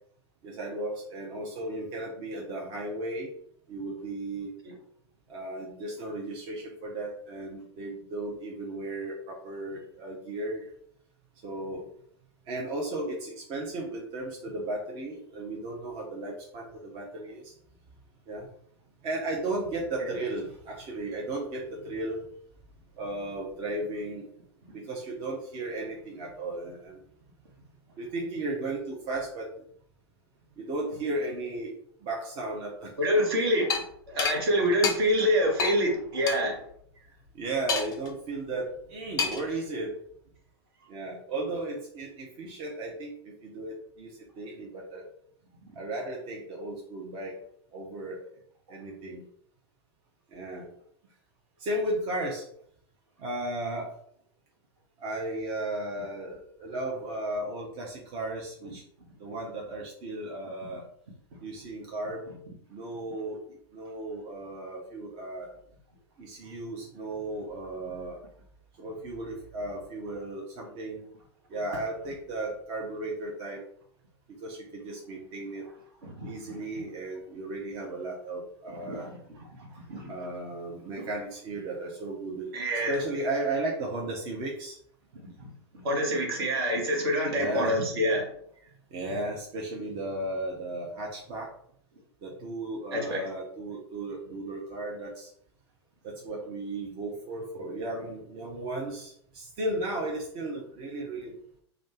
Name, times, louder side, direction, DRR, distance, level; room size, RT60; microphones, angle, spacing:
voice 1, 0.4-3.3 3.7-4.5 5.3-10.7 11.4-11.9 12.5-17.5 18.3-18.5 19.0-22.3 23.0-24.3 24.7-27.0 28.0-29.5 30.6-31.7 32.0-32.9 37.0-37.1 37.3-40.0 40.9-45.0 45.8-47.4 47.7-48.2 48.7-49.2 50.3-50.7 51.6-52.4 53.2-53.9 55.0-58.8 59.2-60.8 61.4-62.3 62.7-63.4 63.7-65.5 66.2-68.2 68.8-71.0 71.5-73.6 74.4-75.7 76.2-79.1 80.1-82.5 82.9-84.8 87.3-87.7 88.9-91.5 92.2-95.3 96.0-101.4, right 2 dB, 35° right, -1 dB, 0.6 m, -35 dB
voice 2, 33.0-36.6 76.0-76.6 78.8-79.1 79.4-80.1 81.0-81.1 82.5-83.0 85.4-85.5 85.7-88.3 92.9-93.2, equal, 60° right, 1 dB, 1.0 m, -27 dB
sound 1, 33.7-33.8 34.2-34.4 34.8-35.0 35.6-35.8 36.3-36.4 37.7-38.1 39.2-39.5, left 6 dB, 25° left, 0.5 m, -28 dB
2.5 x 2.2 x 3.7 m, 0.66 s
figure-of-eight pair, 95°, 14 cm